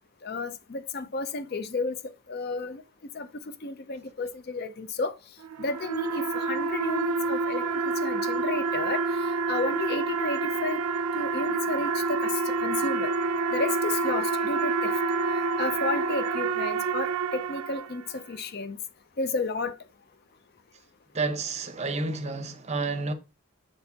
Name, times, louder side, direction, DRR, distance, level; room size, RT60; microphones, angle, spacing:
voice 1, 0.2-2.0 2.3-2.8 3.1-3.3 3.6-5.2 5.6-10.8 11.1-13.1 13.5-15.0 15.6-18.8 19.2-19.8, left 3 dB, 45° left, 0.5 m, -32 dB
sound 1, 5.4-18.2, right 4 dB, 80° right, 0.4 m, -28 dB
voice 2, 21.1-23.1, right 3 dB, 30° right, 0.6 m, -30 dB
7.4 x 4.6 x 2.8 m
head